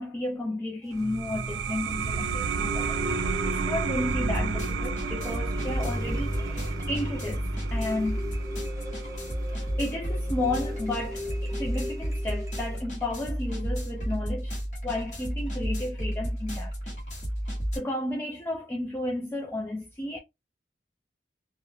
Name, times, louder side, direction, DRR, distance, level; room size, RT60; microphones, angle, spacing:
voice 1, 0.0-3.0 3.4-7.4 7.7-8.2 9.5-14.6 14.8-16.7 17.7-20.2, left 1 dB, 15° left, 0.3 m, -32 dB
sound 1, 0.8-12.8, left 1 dB, 20° right, 0.6 m, -39 dB
sound 2, 0.9-12.1, right 5 dB, 90° right, 0.3 m, -33 dB
sound 3, 2.1-2.3 2.6-17.8, equal, 45° left, 1.1 m, -32 dB
2.4 x 2.2 x 3.2 m
head